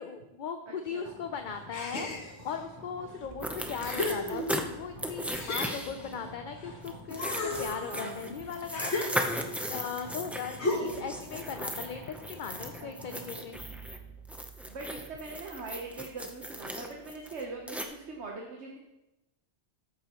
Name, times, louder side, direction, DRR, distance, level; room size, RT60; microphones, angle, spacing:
voice 1, 0.0-4.5 4.8-7.3 7.6-9.4 9.7-13.6, left 6 dB, 50° left, 6 dB, 0.7 m, -38 dB
voice 2, 0.7-1.1 7.8-8.2 12.8-13.3 14.7-18.8, right 3 dB, 75° right, 0 dB, 1.4 m, -42 dB
sound 1, 1.0-18.3, right 1 dB, 35° right, 3.4 m, -49 dB
sound 2, 1.7-2.6 3.2-3.3 3.8-4.8 5.3-6.7 7.1-9.6 10.6-11.2, left 2 dB, 70° left, 1.7 m, -35 dB
sound 3, 3.4-4.6 5.0-6.1 6.8-14.0 14.3-17.8, equal, ahead, 0.7 m, -37 dB
13.5 x 10.5 x 3.1 m, 0.99 s
omnidirectional pair, 1.2 m